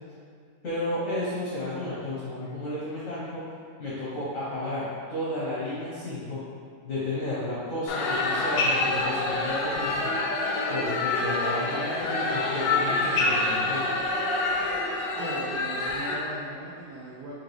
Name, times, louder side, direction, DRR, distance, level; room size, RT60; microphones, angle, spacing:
voice 1, 0.6-3.4 3.8-6.4 6.8-10.1 10.7-13.8, left 1 dB, 65° left, -10 dB, 0.8 m, -32 dB
sound 1, 7.9-16.1, left 2 dB, 85° left, 1.4 m, -27 dB
voice 2, 14.9-17.3, right 2 dB, 85° right, -5 dB, 0.8 m, -39 dB
4.5 x 2.4 x 3.1 m, 2.2 s
omnidirectional pair, 2.2 m